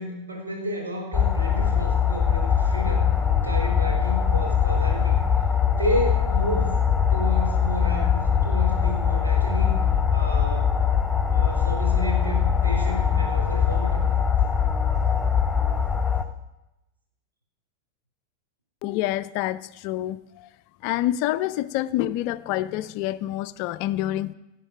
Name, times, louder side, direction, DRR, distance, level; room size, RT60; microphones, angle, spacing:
voice 1, 0.0-3.0 3.4-5.2 5.7-6.7 7.1-9.7 10.1-10.7 11.2-14.0, equal, 75° right, 4.7 m, -31 dB
sound 1, 1.1-16.2, left 7 dB, 15° left, 0.9 m, -22 dB
voice 2, 18.8-20.5 20.8-24.3, left 14 dB, 45° left, 0.5 m, -27 dB
18.0 x 8.2 x 6.5 m
figure-of-eight pair, 90°, 0 cm